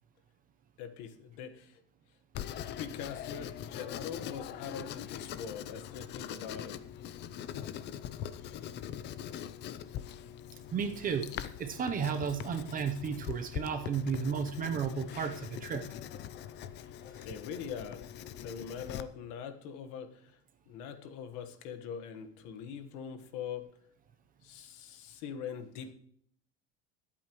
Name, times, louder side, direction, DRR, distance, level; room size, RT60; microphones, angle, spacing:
voice 1, 0.8-1.8 2.8-6.8 16.8-16.9 17.2-18.1 18.4-20.3 20.7-23.7 24.4-25.9, left 7 dB, 60° left, 9 dB, 1.4 m, -42 dB
Writing, 2.3-19.0, left 10 dB, 30° left, 0.5 m, -42 dB
voice 2, 10.7-15.9, right 6 dB, 25° right, 7 dB, 0.7 m, -33 dB
23.0 x 8.6 x 3.1 m, 0.65 s
cardioid pair, 175°, 34 cm